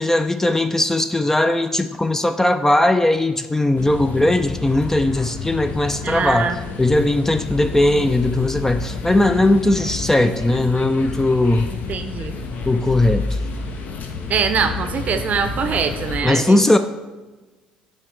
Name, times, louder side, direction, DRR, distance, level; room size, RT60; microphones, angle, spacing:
voice 1, 0.0-6.5 6.8-11.7 12.7-13.2 16.2-16.8, left 1 dB, 10° left, 9 dB, 0.4 m, -18 dB
sound 1, 3.8-16.2, left 4 dB, 50° left, 0.7 m, -30 dB
voice 2, 6.0-6.6 11.9-12.4 14.3-16.6, right 6 dB, 45° right, 8 dB, 0.6 m, -23 dB
9.5 x 3.2 x 3.3 m, 1.2 s
hypercardioid pair, 55°, 4 cm